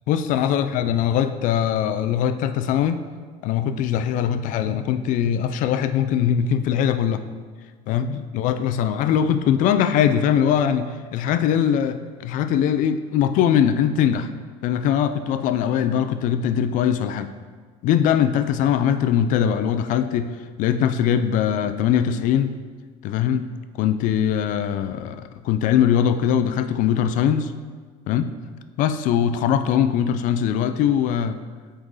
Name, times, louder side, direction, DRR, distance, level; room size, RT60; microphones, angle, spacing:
voice 1, 0.1-3.1 3.4-7.2 7.9-14.3 14.6-17.3 17.8-22.6 23.0-23.5 23.7-27.5 28.1-28.4 28.8-31.4, left 9 dB, 60° left, 10 dB, 0.4 m, -21 dB
7.9 x 3.8 x 4.0 m, 1.5 s
cardioid pair, 150°, 15 cm